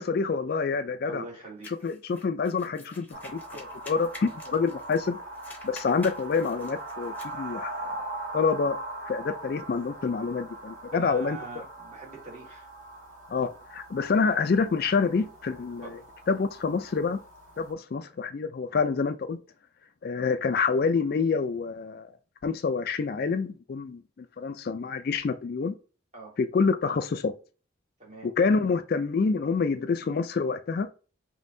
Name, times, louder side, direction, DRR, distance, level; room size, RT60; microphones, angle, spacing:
voice 1, 0.0-1.2 1.8-5.2 5.6-7.9 8.3-8.8 9.1-11.4 13.3-16.0 16.3-17.2 17.6-19.4 20.0-22.1 22.4-25.7 26.4-27.3 28.2-30.9, left 5 dB, 50° left, 0.3 m, -27 dB
voice 2, 1.1-1.7 3.5-3.7 10.9-12.7 15.8-16.0 26.1-26.4 28.0-28.3, right 4 dB, 35° right, 2.0 m, -43 dB
sound 1, 1.6-5.1 5.3-7.3, left 2 dB, 10° left, 0.9 m, -48 dB
sound 2, 3.1-17.7, right 2 dB, 80° right, 2.0 m, -41 dB
5.3 x 2.9 x 2.6 m
head